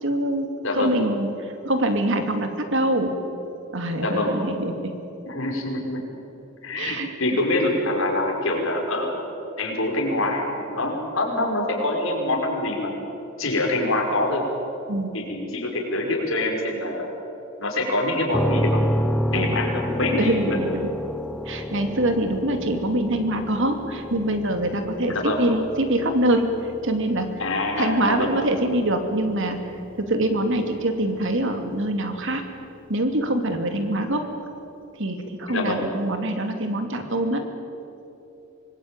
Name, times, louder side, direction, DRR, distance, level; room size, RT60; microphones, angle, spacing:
voice 1, 0.0-3.1 3.7-4.9 6.7-7.1 14.9-15.1 19.3-19.6 19.9-20.9 21.5-26.5 26.8-27.3 27.7-29.6 30.0-32.4 32.9-34.3 35.0-37.4, right 1 dB, 65° right, 6 dB, 2.7 m, -24 dB
voice 2, 0.6-1.0 4.0-4.3 5.2-6.0 6.6-9.3 9.6-13.0 13.4-14.5 15.1-17.1 17.6-20.6 25.1-25.4 27.4-28.3 35.5-35.8, left 2 dB, 70° left, 0 dB, 5.4 m, -25 dB
sound 1, 18.3-32.1, equal, 5° left, 1.0 m, -31 dB
25.0 x 20.5 x 9.0 m, 2.8 s
head